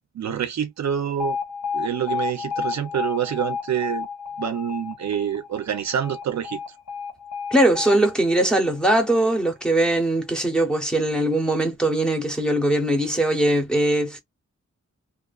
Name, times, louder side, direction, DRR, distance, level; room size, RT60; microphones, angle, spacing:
voice 1, 0.1-1.4 1.7-4.1 4.4-6.6, right 9 dB, 70° right, 0.5 m, -27 dB
Alarm, 1.2-9.2, left 6 dB, 75° left, 0.8 m, -32 dB
voice 2, 7.5-14.2, right 1 dB, 5° left, 0.8 m, -21 dB
2.5 x 2.3 x 2.3 m
wide cardioid pair, 145°, 29 cm